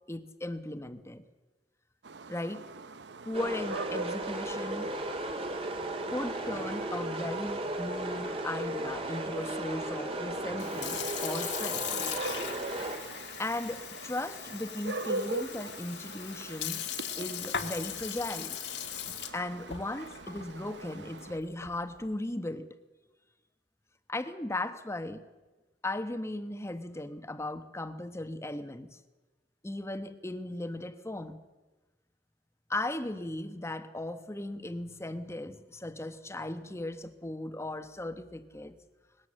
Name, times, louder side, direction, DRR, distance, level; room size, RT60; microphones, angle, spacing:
voice 1, 0.1-1.2 2.3-2.7 3.2-4.9 6.1-11.9 13.4-16.9 17.2-18.6 19.3-22.8 24.1-25.2 25.8-29.0 29.6-31.4 32.7-38.7, left 1 dB, 15° left, 1.1 m, -37 dB
sound 1, 2.0-21.4, right 2 dB, 85° right, 0.9 m, -43 dB
sound 2, 3.3-13.0, right 2 dB, 35° right, 2.4 m, -35 dB
Sink (filling or washing) / Fill (with liquid), 10.5-22.0, left 9 dB, 80° left, 1.7 m, -39 dB
20.5 x 17.5 x 7.6 m
head